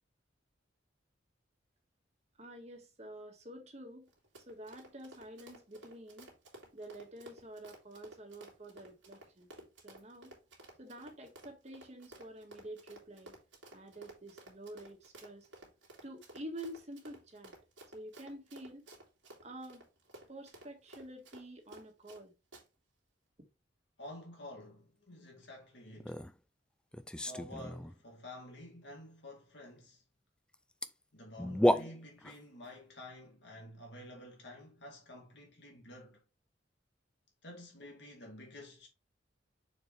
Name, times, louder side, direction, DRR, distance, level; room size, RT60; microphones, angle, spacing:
voice 1, 2.4-4.1 4.4-6.3 6.7-9.5 9.8-10.4 10.8-13.4 13.7-15.5 16.0-17.5 17.9-18.9 19.4-19.9 20.3-22.3 23.4-23.5, right 1 dB, 35° right, 1.6 m, -48 dB
Run, 4.1-22.2 22.5-22.6, right 1 dB, 90° right, 2.5 m, -54 dB
voice 2, 24.0-26.2 27.3-30.0 31.1-36.2 37.4-38.9, left 1 dB, 70° left, 2.4 m, -50 dB
sound 1, 26.0-26.3 26.9-28.0 30.5-30.6 30.8-30.9 31.4-32.4, equal, 5° left, 0.3 m, -31 dB
6.6 x 4.6 x 3.3 m
head